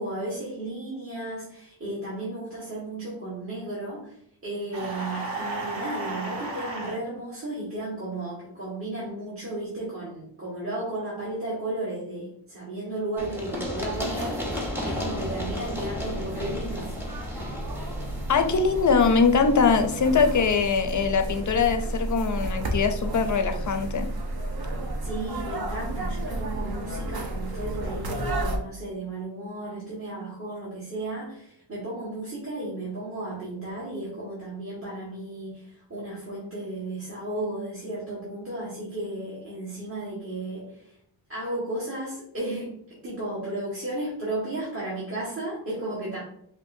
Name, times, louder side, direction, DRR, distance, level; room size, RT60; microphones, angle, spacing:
voice 1, 0.0-14.5 14.8-17.0 25.0-41.0 41.3-46.2, right 1 dB, 30° right, -8 dB, 1.4 m, -34 dB
sound 1, 4.7-7.0, right 3 dB, 70° right, 1.4 m, -33 dB
Run, 13.2-20.8, left 1 dB, 5° right, 0.9 m, -35 dB
sound 2, 13.6-28.6, right 1 dB, 50° right, 0.8 m, -33 dB
voice 2, 18.3-24.1, left 5 dB, 40° left, 7 dB, 0.5 m, -22 dB
5.3 x 2.6 x 2.6 m, 0.68 s
wide cardioid pair, 95°, 47 cm